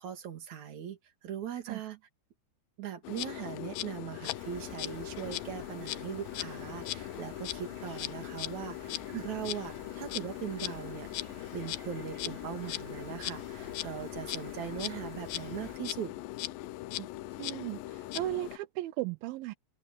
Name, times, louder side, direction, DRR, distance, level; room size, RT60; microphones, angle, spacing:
voice 1, 0.0-2.0 2.8-11.1 11.5-16.2, right 9 dB, 50° right, 3.3 m, -40 dB
Insect, 3.0-18.6, left 17 dB, 90° left, 1.9 m, -39 dB
sound 1, 4.3-15.8, right 3 dB, 30° right, 1.2 m, -52 dB
voice 2, 17.4-19.5, right 17 dB, 80° right, 2.2 m, -36 dB
omnidirectional pair, 4.8 m